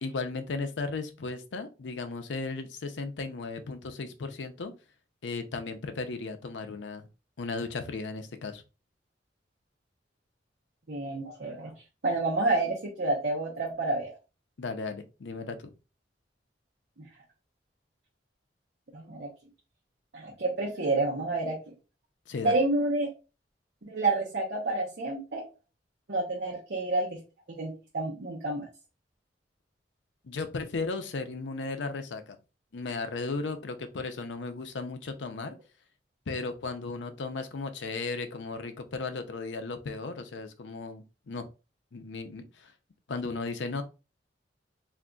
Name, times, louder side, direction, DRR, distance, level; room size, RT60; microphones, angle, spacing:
voice 1, 0.0-4.7 5.2-7.0 7.4-8.6 14.6-15.7 22.3-22.6 30.2-32.4 32.7-35.6 36.3-41.5 41.9-42.7 43.1-43.8, left 3 dB, 85° left, 0.5 m, -35 dB
voice 2, 10.9-11.7 12.0-14.1 18.9-19.3 20.1-21.6 22.4-23.1 23.9-25.4 26.1-27.2 27.5-28.7, right 2 dB, 65° right, 0.8 m, -29 dB
3.8 x 2.6 x 2.3 m
head